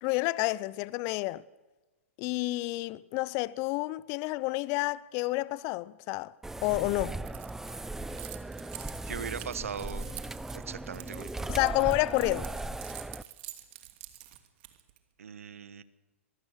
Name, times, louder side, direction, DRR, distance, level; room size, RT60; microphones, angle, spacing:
voice 1, 0.0-1.4 2.2-6.3 6.6-7.2 11.5-12.5, left 20 dB, 40° left, 0.7 m, -29 dB
Chair Slide Slow, 6.4-13.2, right 2 dB, 5° right, 0.6 m, -38 dB
Keys jangling, 7.3-15.0, right 16 dB, 50° right, 2.7 m, -47 dB
voice 2, 9.1-10.0 10.5-11.5 15.2-15.8, right 7 dB, 75° right, 1.4 m, -39 dB
24.5 x 20.5 x 6.6 m
hypercardioid pair, 110°, 8 cm